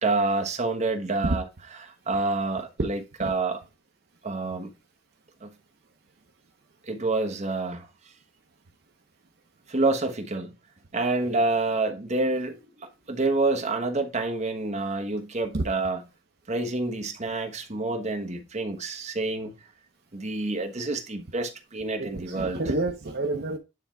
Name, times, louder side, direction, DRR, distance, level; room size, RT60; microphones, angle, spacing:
voice 1, 0.0-1.4 1.8-3.6 4.2-4.7 5.4-5.5 6.9-7.9 9.7-10.5 10.9-16.0 16.5-19.5 20.1-22.6, right 3 dB, 40° right, 1.2 m, -28 dB
voice 2, 22.0-23.6, right 2 dB, 60° right, 0.8 m, -28 dB
9.7 x 3.4 x 4.6 m
head